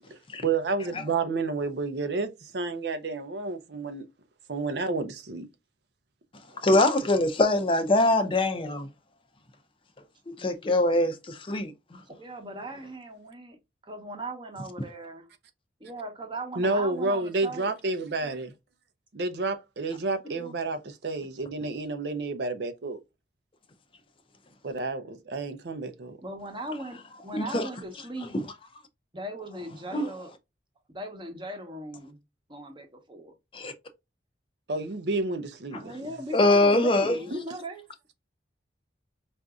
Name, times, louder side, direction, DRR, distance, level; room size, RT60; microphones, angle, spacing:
voice 1, 0.4-4.1 4.5-5.5 16.6-18.5 19.1-23.0 24.6-26.2 34.7-35.9, right 3 dB, 65° right, 0.6 m, -30 dB
voice 2, 6.6-8.9 10.4-11.7 20.4-20.5 27.3-27.7 29.9-30.1 33.5-33.7 35.7-35.8 36.3-37.2, left 2 dB, 30° left, 0.5 m, -23 dB
voice 3, 12.0-13.6 13.8-15.3 15.8-17.7 26.2-28.4 29.1-30.3 30.9-32.2 32.5-33.3 35.7-37.9, right 1 dB, 30° right, 0.9 m, -38 dB
4.8 x 2.6 x 2.3 m
head